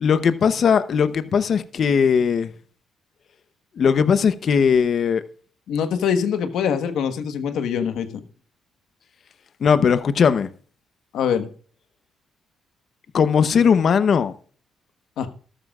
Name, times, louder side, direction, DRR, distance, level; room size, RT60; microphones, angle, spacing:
voice 1, 0.0-2.5 3.8-5.2 9.6-10.5 13.1-14.3, left 6 dB, 55° left, 0.8 m, -18 dB
voice 2, 5.7-8.2 11.1-11.5 15.2-15.3, left 7 dB, 80° left, 1.3 m, -24 dB
13.0 x 12.5 x 2.4 m
cardioid pair, 90°, 0 cm